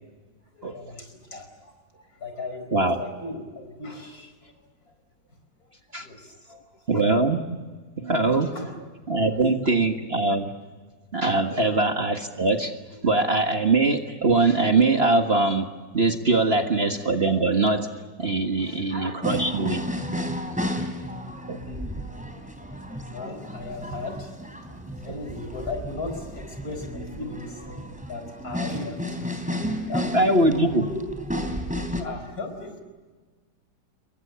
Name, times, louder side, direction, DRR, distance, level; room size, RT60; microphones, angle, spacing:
voice 1, 0.5-4.5 5.9-7.0 8.2-8.8 9.1-9.5 11.5-11.7 16.6-16.7 18.6-19.2 20.4-20.7 21.6-21.9 22.9-30.3 30.7-31.0 31.6-31.7 32.0-32.8, left 2 dB, 55° left, 6 dB, 5.2 m, -38 dB
voice 2, 6.9-7.4 8.0-8.5 9.1-10.5 11.1-12.7 13.0-15.7 15.9-17.9 18.2-19.8 21.5-21.6 30.1-30.8, right 2 dB, 35° right, 4 dB, 1.7 m, -22 dB
sound 1, 19.2-32.0, equal, 5° right, 3.3 m, -32 dB
29.0 x 23.0 x 6.9 m, 1.4 s
omnidirectional pair, 1.9 m